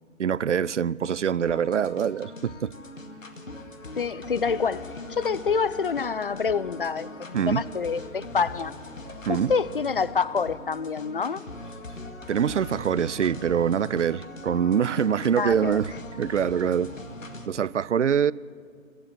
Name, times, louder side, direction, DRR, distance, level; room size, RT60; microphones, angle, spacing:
voice 1, 0.2-2.7 7.3-7.6 9.3-9.5 12.3-16.9 17.5-18.3, right 8 dB, 60° right, 0.5 m, -24 dB
sound 1, 1.5-17.5, left 2 dB, 70° left, 2.2 m, -41 dB
voice 2, 4.0-8.7 9.3-11.4 15.4-15.8, left 5 dB, 45° left, 0.5 m, -27 dB
26.5 x 13.0 x 7.4 m
figure-of-eight pair, 135°, 40 cm